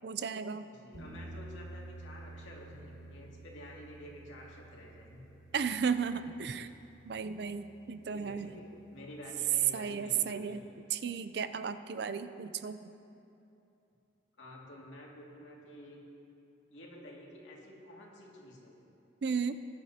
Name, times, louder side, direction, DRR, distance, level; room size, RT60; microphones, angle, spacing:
voice 1, 0.0-0.7 5.5-6.7 7.0-8.5 9.7-10.6 10.9-12.8 19.2-19.6, right 6 dB, 55° right, 12 dB, 0.4 m, -34 dB
voice 2, 0.6-5.3 8.1-10.6 14.4-16.0 16.7-18.7, left 1 dB, 80° left, -3 dB, 2.2 m, -50 dB
sound 1, 0.9-9.9, right 2 dB, 85° right, 2.3 m, -51 dB
20.0 x 10.5 x 2.8 m, 2.8 s
head